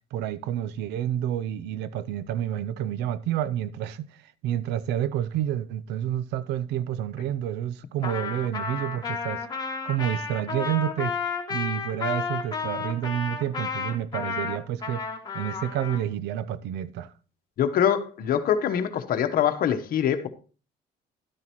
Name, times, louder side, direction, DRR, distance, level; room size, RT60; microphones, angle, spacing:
voice 1, 0.1-4.1 4.4-9.5 9.8-11.1 11.5-15.0 15.3-17.1, right 11 dB, 85° right, 0.6 m, -29 dB
Trumpet, 8.0-16.0, left 5 dB, 25° left, 2.5 m, -32 dB
voice 2, 17.6-20.3, left 9 dB, 60° left, 1.1 m, -24 dB
12.0 x 9.7 x 3.0 m
cardioid pair, 110°, 17 cm